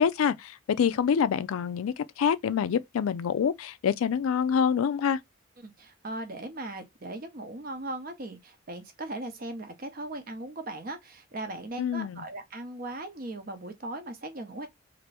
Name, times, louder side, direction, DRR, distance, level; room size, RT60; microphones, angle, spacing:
voice 1, 0.0-5.2 11.8-12.2, left 7 dB, 85° left, 0.3 m, -26 dB
voice 2, 5.6-14.7, right 2 dB, 45° right, 0.7 m, -38 dB
2.9 x 2.6 x 3.2 m
head